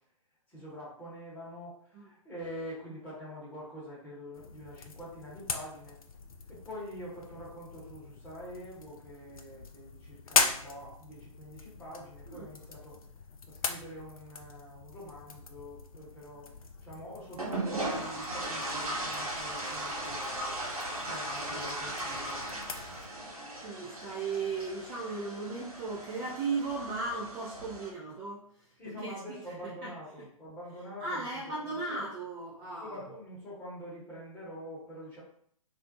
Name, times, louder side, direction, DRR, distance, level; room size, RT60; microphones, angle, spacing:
voice 1, 0.5-6.0 6.5-13.0 13.5-16.5 16.8-20.7 21.0-22.6 28.8-32.0 32.6-35.2, equal, 10° left, -7 dB, 1.0 m, -45 dB
sound 1, 4.3-23.1, left 4 dB, 75° left, 0.4 m, -39 dB
sound 2, 17.4-27.9, right 1 dB, 85° right, 0.8 m, -37 dB
voice 2, 23.6-28.5 28.9-29.1 29.8-29.9 31.0-33.0, right 3 dB, 20° right, -6 dB, 0.4 m, -36 dB
2.4 x 2.0 x 2.6 m, 0.64 s
figure-of-eight pair, 125°, 18 cm